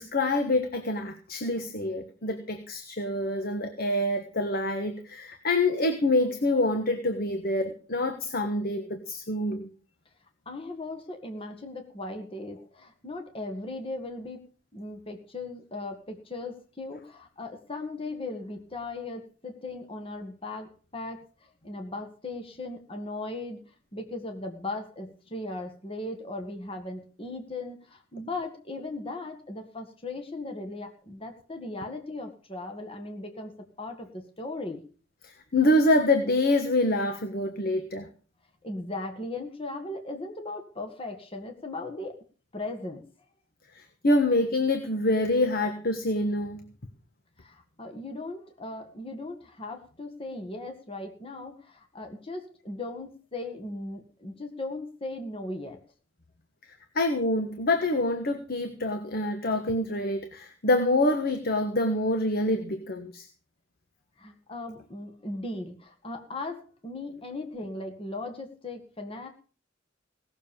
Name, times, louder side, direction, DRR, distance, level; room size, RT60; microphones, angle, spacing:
voice 1, 0.0-9.7 35.2-38.1 43.7-46.6 56.9-63.3, left 1 dB, 50° left, 7 dB, 1.4 m, -26 dB
voice 2, 10.5-14.4 14.7-23.6 23.9-33.5 33.8-34.8 38.6-42.2 42.5-43.0 47.4-55.8 64.2-69.3, left 2 dB, 30° left, 4 dB, 1.9 m, -38 dB
18.0 x 7.1 x 7.1 m, 0.39 s
head